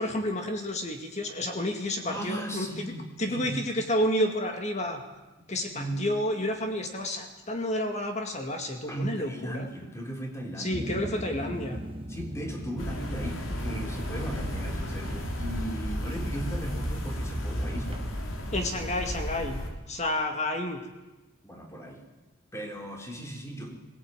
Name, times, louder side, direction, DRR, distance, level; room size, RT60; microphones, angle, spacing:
voice 1, 0.0-2.9 3.2-5.0 5.5-9.7 10.6-11.8 18.5-20.8, left 1 dB, 35° left, 4 dB, 2.2 m, -30 dB
voice 2, 2.0-3.6 5.7-6.1 8.9-10.8 12.1-18.0 21.4-22.0 22.5-23.8, right 1 dB, 15° left, 2 dB, 3.4 m, -37 dB
sound 1, 10.7-18.6, right 1 dB, 25° right, 1.2 m, -39 dB
sound 2, 12.8-19.7, equal, 80° left, 3.5 m, -34 dB
21.0 x 18.0 x 9.1 m, 1.1 s
head